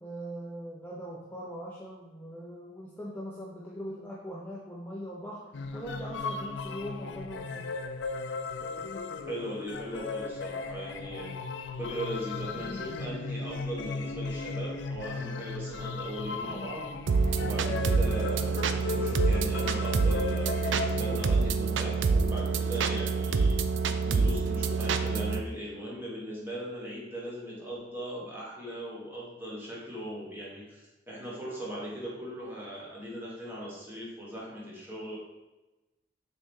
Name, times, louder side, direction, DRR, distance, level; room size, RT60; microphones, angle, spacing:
voice 1, 0.0-7.7, equal, 10° left, -5 dB, 0.6 m, -41 dB
sound 1, 5.5-21.6, left 4 dB, 75° left, 0.5 m, -36 dB
voice 2, 9.3-11.3 11.8-16.9 17.4-23.6 24.1-35.2, equal, 10° right, -6 dB, 1.5 m, -39 dB
sound 2, 17.1-25.4, right 4 dB, 80° right, 0.4 m, -27 dB
6.2 x 4.1 x 3.7 m, 1.1 s
head